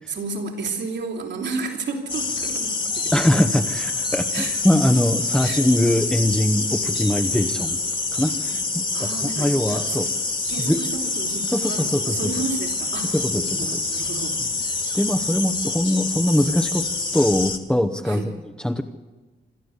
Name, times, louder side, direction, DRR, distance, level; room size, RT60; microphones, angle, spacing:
voice 1, 0.1-3.1 4.3-4.6 5.4-5.6 8.9-10.0 10.5-14.4 18.1-18.3, right 4 dB, 75° right, 2 dB, 3.8 m, -32 dB
sound 1, 2.1-17.6, left 3 dB, 25° left, 1.9 m, -26 dB
voice 2, 3.1-7.8 8.1-9.1 9.4-10.1 10.6-10.8 11.4-12.3 13.1-13.8 14.9-16.8 17.1-18.8, left 1 dB, 5° left, 5 dB, 0.9 m, -22 dB
26.0 x 12.5 x 8.1 m, 1.2 s
cardioid pair, 115°, 19 cm